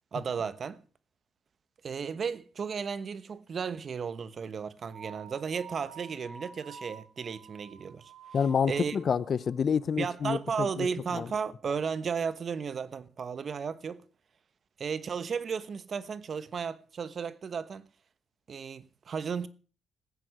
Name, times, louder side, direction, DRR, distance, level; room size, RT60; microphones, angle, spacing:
voice 1, 0.1-0.8 1.8-8.1 8.6-9.0 10.0-14.0 14.8-17.8 18.5-19.5, right 6 dB, 45° right, 1.0 m, -34 dB
sound 1, 4.9-9.5, right 5 dB, 65° right, 8.0 m, -49 dB
voice 2, 8.3-10.9 11.1-11.3, left 7 dB, 50° left, 0.7 m, -28 dB
14.0 x 9.6 x 6.2 m
cardioid pair, 90°, 0 cm